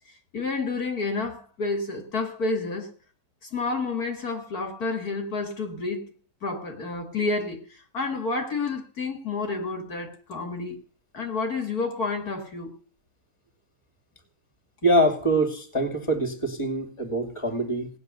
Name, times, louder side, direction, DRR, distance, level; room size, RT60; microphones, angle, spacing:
voice 1, 0.3-2.9 3.4-6.0 6.4-10.8 11.1-12.7, left 3 dB, 55° left, 2.4 m, -30 dB
voice 2, 14.8-17.9, right 1 dB, 15° left, 2.7 m, -24 dB
18.0 x 9.9 x 6.7 m
omnidirectional pair, 1.9 m